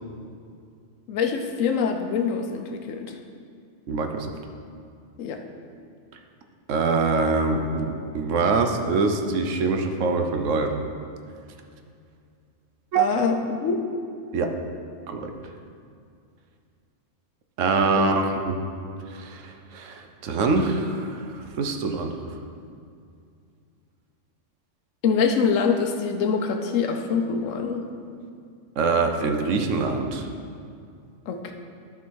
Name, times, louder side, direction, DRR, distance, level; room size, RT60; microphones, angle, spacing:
voice 1, 1.1-3.1 5.2-5.4 13.0-13.8 18.0-18.1 25.0-27.8 31.3-31.5, left 5 dB, 85° left, 5 dB, 1.1 m, -25 dB
voice 2, 3.9-4.3 6.7-10.7 12.9-13.0 14.3-14.5 15.1-15.3 17.6-18.6 19.1-22.1 28.8-30.3, right 4 dB, 75° right, 5 dB, 1.1 m, -24 dB
12.0 x 4.9 x 4.7 m, 2.4 s
omnidirectional pair, 1.3 m